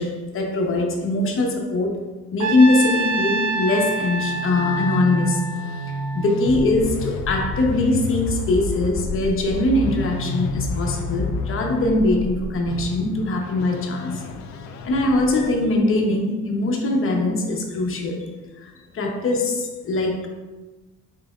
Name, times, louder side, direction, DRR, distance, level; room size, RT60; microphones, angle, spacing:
voice 1, 0.0-2.0 2.3-5.4 6.1-14.2 14.8-18.3 18.6-20.3, left 2 dB, 45° left, 1 dB, 0.8 m, -22 dB
Trumpet, 2.4-6.6, right 1 dB, 75° right, 0.6 m, -27 dB
sound 1, 3.9-15.7, left 2 dB, 70° left, 0.4 m, -30 dB
4.4 x 3.3 x 2.3 m, 1.2 s
cardioid pair, 90°, 30 cm